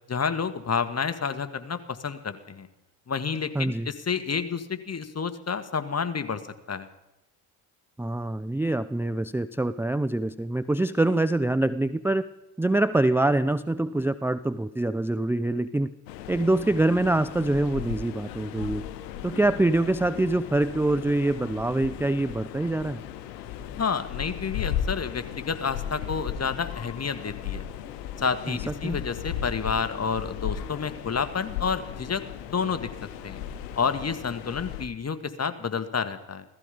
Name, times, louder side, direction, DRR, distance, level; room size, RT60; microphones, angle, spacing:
voice 1, 0.1-2.7 3.1-6.4 6.7-6.9 23.8-27.6 28.2-32.2 32.5-32.9 33.2-33.4 33.7-36.4, left 6 dB, 30° left, 10 dB, 1.6 m, -29 dB
voice 2, 3.5-3.9 8.0-12.3 12.6-15.9 16.3-18.8 19.2-23.0 28.5-29.0, right 2 dB, 5° right, 14 dB, 0.5 m, -25 dB
sound 1, 16.1-34.8, left 9 dB, 90° left, 0.9 m, -36 dB
16.5 x 14.5 x 5.2 m, 0.97 s
hypercardioid pair, 50°, 48 cm